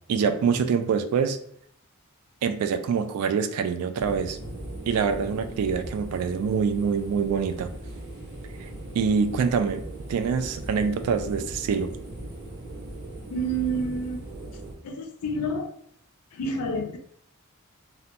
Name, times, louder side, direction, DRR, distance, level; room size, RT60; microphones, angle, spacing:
voice 1, 0.1-1.4 2.4-4.4 4.9-7.7 8.6-8.7 8.9-9.8 10.1-11.9, right 6 dB, 90° right, 11 dB, 0.3 m, -25 dB
sound 1, 4.0-14.7, right 1 dB, 70° right, 1.0 m, -39 dB
voice 2, 13.3-14.2 14.8-15.7 16.3-17.0, right 2 dB, 80° left, 5 dB, 0.4 m, -29 dB
2.7 x 2.2 x 2.5 m, 0.68 s
head